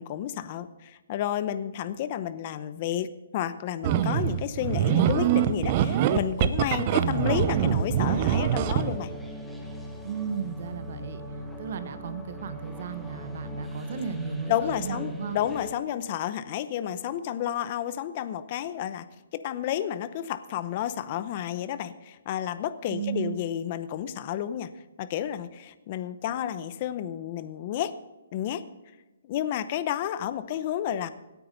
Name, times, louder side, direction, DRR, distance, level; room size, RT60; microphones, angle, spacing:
voice 1, 0.0-3.1 3.3-9.1 14.5-19.1 19.3-24.7 25.0-27.9 28.3-28.6 29.2-31.1, left 10 dB, 30° left, 14 dB, 0.7 m, -31 dB
sound 1, 3.8-9.0, right 10 dB, 25° right, 0.7 m, -24 dB
sound 2, 7.4-15.7, left 1 dB, ahead, 1.1 m, -40 dB
voice 2, 10.0-11.2 11.6-15.4 22.9-23.4, right 7 dB, 45° right, 11 dB, 1.2 m, -35 dB
17.0 x 9.3 x 5.4 m, 1.1 s
hypercardioid pair, 170°, 0 cm